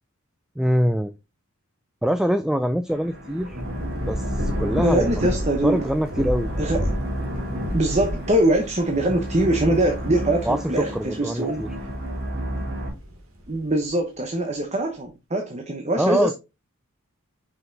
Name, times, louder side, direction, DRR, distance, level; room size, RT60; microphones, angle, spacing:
voice 1, 0.6-1.1 2.0-3.6 4.1-5.1 5.6-6.5 10.4-11.7 16.0-16.3, equal, 5° right, 0.3 m, -24 dB
sound 1, 2.9-12.9, equal, 50° right, 3.1 m, -32 dB
Thunder / Rain, 3.1-12.0 12.5-13.9, equal, 70° right, 2.3 m, -31 dB
voice 2, 4.8-5.9 6.6-6.9 7.7-11.6 13.5-16.3, right 1 dB, 30° right, 0.9 m, -23 dB
5.7 x 5.6 x 3.9 m
head